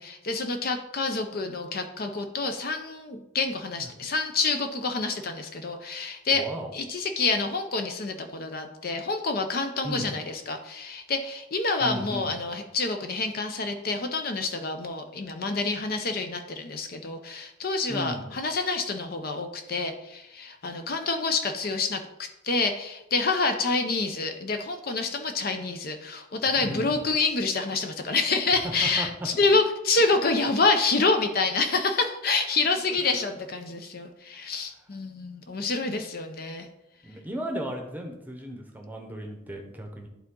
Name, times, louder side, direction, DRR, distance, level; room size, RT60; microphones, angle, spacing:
voice 1, 0.0-6.4 6.7-36.7, left 3 dB, 45° left, 6 dB, 0.6 m, -27 dB
voice 2, 6.3-6.7 9.8-10.1 11.8-12.3 17.9-18.3 26.6-27.0 28.6-29.1 32.9-33.3 37.0-40.1, equal, 10° right, 2 dB, 0.8 m, -35 dB
11.0 x 3.8 x 3.7 m, 0.89 s
head